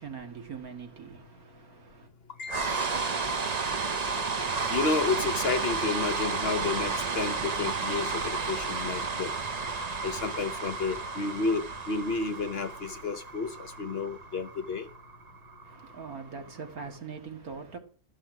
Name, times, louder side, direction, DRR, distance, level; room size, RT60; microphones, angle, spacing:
voice 1, 0.0-2.1 15.6-17.8, right 5 dB, 80° right, 2.5 m, -42 dB
voice 2, 2.4-2.9 4.7-9.3 10.0-14.9, left 4 dB, 50° left, 0.9 m, -31 dB
sound 1, 2.5-16.6, right 4 dB, 35° right, 0.8 m, -32 dB
13.5 x 5.7 x 8.0 m
omnidirectional pair, 1.5 m